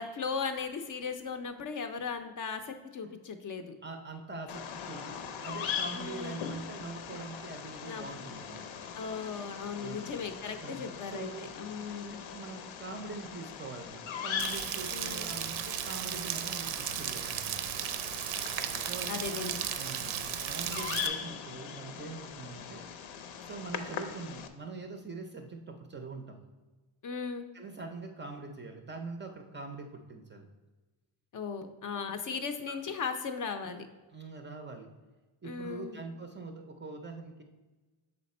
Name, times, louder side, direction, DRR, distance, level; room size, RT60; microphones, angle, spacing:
voice 1, 0.0-3.8 5.9-6.5 7.9-8.1 8.9-12.2 14.9-15.4 19.1-19.7 27.0-27.5 31.3-33.9 35.4-36.0, left 5 dB, 45° left, 7 dB, 0.5 m, -37 dB
voice 2, 3.8-8.7 9.8-10.1 10.6-11.5 12.3-17.5 18.9-20.2 20.5-22.9 23.4-26.4 27.5-30.5 32.7-32.8 34.1-34.9 35.4-37.4, right 3 dB, 25° right, 5 dB, 0.4 m, -43 dB
Bird vocalization bird call bird song, 4.5-24.5, left 7 dB, 75° left, 0.7 m, -41 dB
Rain, 14.4-21.1, right 11 dB, 90° right, 0.6 m, -35 dB
6.4 x 4.2 x 4.1 m, 1.2 s
cardioid pair, 145°, 47 cm